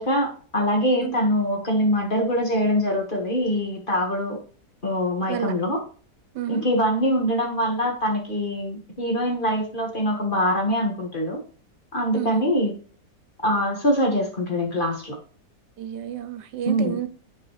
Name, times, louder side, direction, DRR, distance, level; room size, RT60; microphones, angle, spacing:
voice 1, 0.0-4.4 4.8-5.8 6.5-11.4 11.9-12.7 13.4-15.2 16.6-17.0, equal, 30° left, 1.7 m, -23 dB
voice 2, 15.8-17.1, right 10 dB, 75° right, 1.3 m, -30 dB
10.5 x 4.7 x 3.2 m
omnidirectional pair, 1.9 m